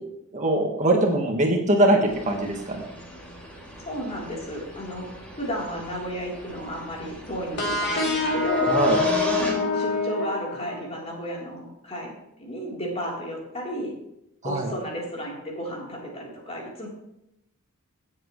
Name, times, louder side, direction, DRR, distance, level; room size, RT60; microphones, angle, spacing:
voice 1, 0.3-2.8 8.7-9.0 14.4-14.7, right 1 dB, 35° right, 1 dB, 1.5 m, -22 dB
sound 1, 2.1-9.5, equal, 5° left, 2.7 m, -38 dB
voice 2, 3.8-5.1 5.4-8.8 9.4-12.1 12.4-13.9 14.4-16.9, equal, 30° left, -3 dB, 3.7 m, -33 dB
sound 2, 7.6-11.1, left 3 dB, 55° left, 3.1 m, -25 dB
17.5 x 7.8 x 3.2 m, 0.83 s
head